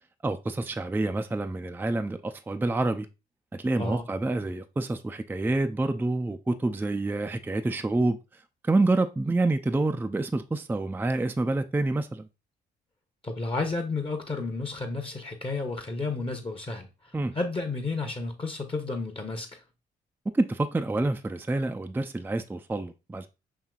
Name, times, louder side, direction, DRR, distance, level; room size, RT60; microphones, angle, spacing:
voice 1, 0.2-3.1 3.5-8.2 8.7-12.3 17.1-17.3 20.3-23.3, right 2 dB, 10° right, 0.4 m, -27 dB
voice 2, 13.2-16.9 17.3-19.6, left 3 dB, 25° left, 0.9 m, -31 dB
5.7 x 2.9 x 2.4 m
hypercardioid pair, 50°, 20 cm